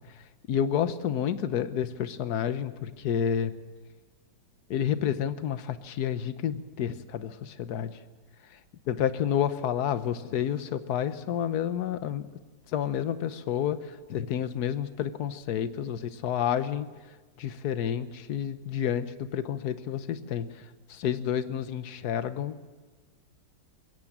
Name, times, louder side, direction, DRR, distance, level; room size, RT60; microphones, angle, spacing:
voice 1, 0.5-3.5 4.7-8.0 8.9-12.3 12.7-16.9 17.4-20.5 20.9-22.7, left 9 dB, 60° left, 12 dB, 1.4 m, -30 dB
21.0 x 17.0 x 7.3 m, 1.3 s
omnidirectional pair, 2.0 m